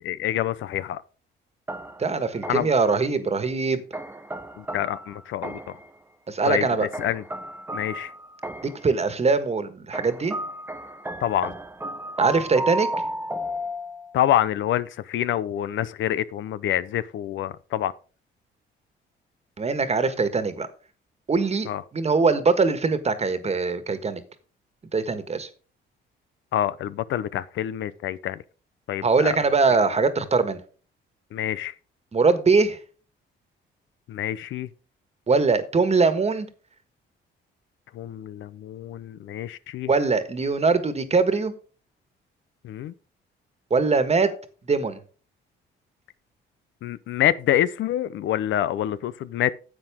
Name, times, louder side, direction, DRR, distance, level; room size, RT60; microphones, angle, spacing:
voice 1, 0.0-1.0 2.5-2.7 4.6-5.6 6.5-7.2 7.7-8.1 11.2-11.5 14.1-17.9 21.7-21.8 26.5-28.4 28.9-29.4 31.3-31.7 34.1-34.7 37.9-39.9 42.6-42.9 46.8-49.5, left 12 dB, 75° left, 0.6 m, -26 dB
sound 1, 1.7-2.9 3.9-5.9 6.9-8.9 9.9-14.2, right 1 dB, 10° right, 0.9 m, -33 dB
voice 2, 2.0-3.8 6.3-6.9 8.8-10.4 12.2-12.9 19.6-20.7 21.3-24.2 24.9-25.5 29.0-30.6 32.1-32.8 35.3-36.5 39.9-41.5 43.7-44.3 44.7-45.0, right 4 dB, 30° right, 1.5 m, -22 dB
10.5 x 7.8 x 3.6 m
cardioid pair, 90°, 20 cm